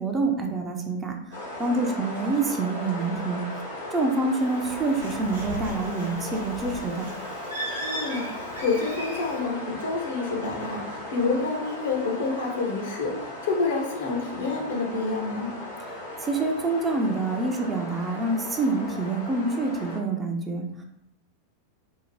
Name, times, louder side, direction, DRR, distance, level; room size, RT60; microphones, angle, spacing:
voice 1, 0.0-3.4 3.9-7.1 15.9-16.0 16.2-20.8, right 3 dB, 20° right, 2 dB, 0.4 m, -27 dB
sound 1, 1.3-20.0, left 1 dB, 75° left, 0.9 m, -37 dB
Bird, 4.4-9.4, right 1 dB, 75° right, 0.9 m, -37 dB
voice 2, 7.8-15.5, left 3 dB, 60° left, 1 dB, 0.6 m, -28 dB
2.7 x 2.0 x 3.0 m, 0.81 s
figure-of-eight pair, 90°, 0 cm